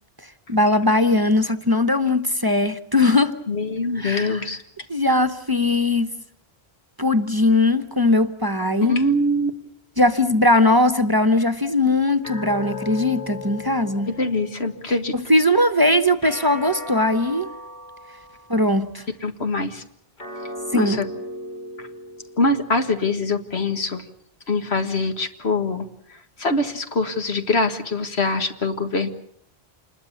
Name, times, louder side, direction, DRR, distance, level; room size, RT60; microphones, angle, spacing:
voice 1, 0.5-3.3 3.9-4.5 4.9-6.1 7.0-9.0 10.0-14.1 15.1-17.5 18.5-19.0 20.7-21.0, left 2 dB, 20° right, 9 dB, 1.0 m, -19 dB
voice 2, 3.5-4.6 8.9-9.5 14.1-15.2 19.2-19.8 20.7-21.1 22.4-24.0 24.5-25.9 26.4-29.1, left 2 dB, 75° left, 7 dB, 2.0 m, -23 dB
sound 1, 12.2-14.8 16.2-18.8 20.2-22.8, left 1 dB, 50° left, 6.3 m, -36 dB
27.0 x 21.0 x 7.2 m, 0.69 s
omnidirectional pair, 1.1 m